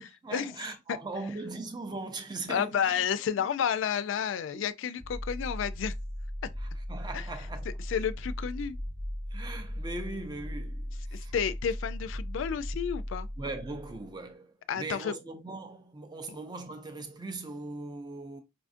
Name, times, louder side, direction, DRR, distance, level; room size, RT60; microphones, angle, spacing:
voice 1, 0.0-3.0 4.5-4.7 6.6-7.7 9.3-11.3 13.4-18.4, right 3 dB, 20° right, 0.4 m, -40 dB
voice 2, 2.5-5.9 7.1-7.3 7.9-8.8 11.1-13.3 14.7-15.1, left 8 dB, 70° left, 0.3 m, -31 dB
sound 1, 5.0-14.1, equal, 55° right, 1.0 m, -37 dB
4.8 x 2.4 x 2.5 m
head